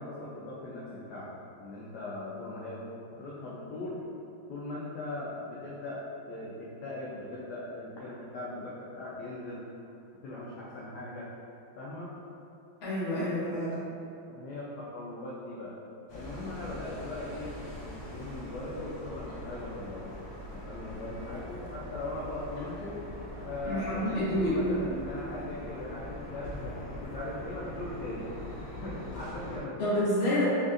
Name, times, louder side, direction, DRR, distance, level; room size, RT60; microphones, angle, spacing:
voice 1, 0.0-2.9 3.1-4.0 4.5-6.0 6.3-9.6 10.2-11.3 11.8-12.1 13.4-13.5 14.3-15.8 16.1-20.1 20.4-23.0 23.4-28.3 28.8-29.9, left 2 dB, 70° left, -7 dB, 1.0 m, -39 dB
voice 2, 12.8-13.7 23.6-24.6 29.8-30.4, left 1 dB, 35° left, -10 dB, 1.2 m, -28 dB
sound 1, 16.1-29.6, left 1 dB, 85° left, 0.5 m, -42 dB
4.0 x 3.4 x 2.5 m, 2.7 s
omnidirectional pair, 2.2 m